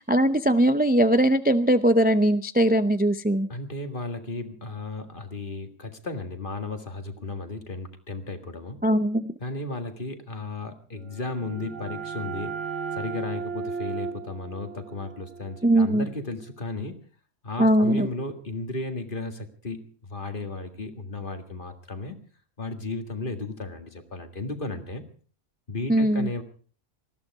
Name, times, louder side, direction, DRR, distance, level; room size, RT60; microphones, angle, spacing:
voice 1, 0.1-3.5 8.8-9.3 15.6-16.1 17.6-18.1 25.9-26.3, right 1 dB, 15° right, 10 dB, 0.4 m, -20 dB
voice 2, 3.5-8.8 9.4-12.7 12.9-17.0 17.4-22.2 22.6-25.0 25.7-26.4, left 2 dB, 40° left, 6 dB, 2.1 m, -34 dB
sound 1, 11.0-16.6, right 5 dB, 70° right, 1.8 m, -36 dB
19.5 x 14.5 x 4.7 m, 0.42 s
omnidirectional pair, 1.3 m